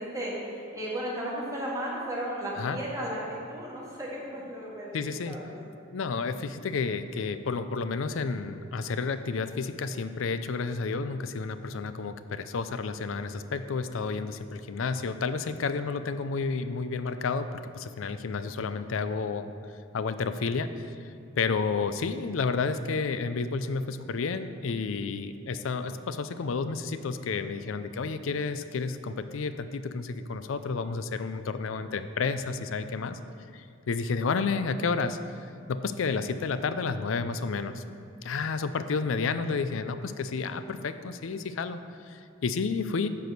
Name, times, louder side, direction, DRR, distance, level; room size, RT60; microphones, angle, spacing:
voice 1, 0.0-5.5, right 1 dB, 15° right, -5 dB, 1.8 m, -35 dB
voice 2, 4.9-5.4 5.9-19.5 19.9-33.2 33.5-35.2 35.7-37.8 38.2-43.1, left 4 dB, 85° left, 11 dB, 0.4 m, -31 dB
9.2 x 4.7 x 6.6 m, 2.5 s
head